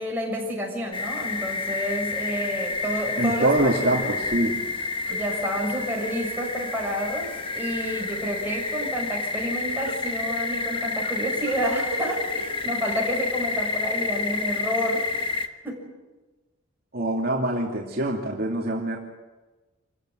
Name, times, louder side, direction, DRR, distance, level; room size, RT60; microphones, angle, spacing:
voice 1, 0.0-4.1 5.1-15.9, equal, 10° right, -2 dB, 7.2 m, -30 dB
sound 1, 0.9-15.5, left 3 dB, 25° left, 1.4 m, -29 dB
sound 2, 2.7-4.7 4.9-6.6 6.9-14.6 15.0-15.2, right 2 dB, 65° right, 4.1 m, -40 dB
voice 2, 3.2-4.6 16.9-19.0, right 1 dB, 50° right, -2 dB, 2.7 m, -24 dB
27.5 x 16.0 x 9.3 m, 1.2 s
head